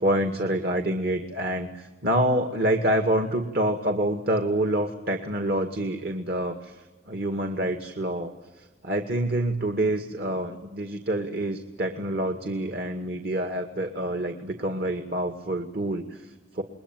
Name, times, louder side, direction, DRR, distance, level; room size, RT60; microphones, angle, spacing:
voice 1, 0.0-16.6, right 1 dB, 60° right, 6 dB, 2.1 m, -27 dB
29.0 x 22.0 x 9.2 m, 1.2 s
head